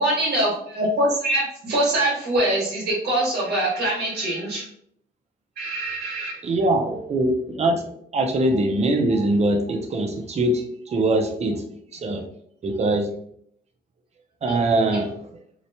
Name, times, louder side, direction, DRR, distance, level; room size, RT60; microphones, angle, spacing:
voice 1, 0.0-4.6 5.6-6.4, right 1 dB, 65° right, -5 dB, 1.2 m, -23 dB
voice 2, 6.4-11.6 11.9-12.3 12.6-13.1 14.4-15.3, right 2 dB, 40° right, 4 dB, 0.5 m, -22 dB
2.8 x 2.1 x 2.7 m, 0.67 s
cardioid pair, 105°, 18 cm